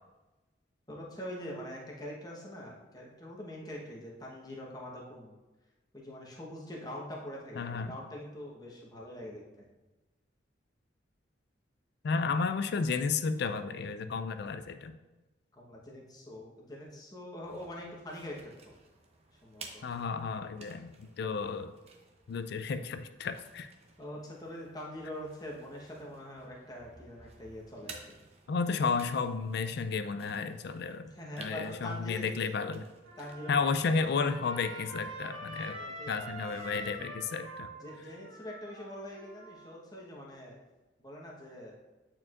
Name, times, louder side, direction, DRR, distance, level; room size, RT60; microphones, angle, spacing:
voice 1, 0.9-5.4 5.9-9.7 15.5-18.4 18.6-18.7 19.4-19.8 24.0-28.2 31.0-32.3 33.2-33.8 35.6-36.8 37.7-40.6 41.0-41.7, left 1 dB, 20° left, -3 dB, 1.0 m, -44 dB
voice 2, 7.6-8.0 12.0-15.0 19.8-21.7 22.3-23.7 28.5-31.1 31.4-32.8 33.5-35.8 36.1-37.7, left 5 dB, 60° left, 10 dB, 0.4 m, -32 dB
sound 1, 17.4-37.0, right 4 dB, 35° right, 0.6 m, -56 dB
Trumpet, 33.0-39.7, right 1 dB, 70° right, 1.8 m, -45 dB
8.6 x 4.4 x 2.4 m, 1.1 s
head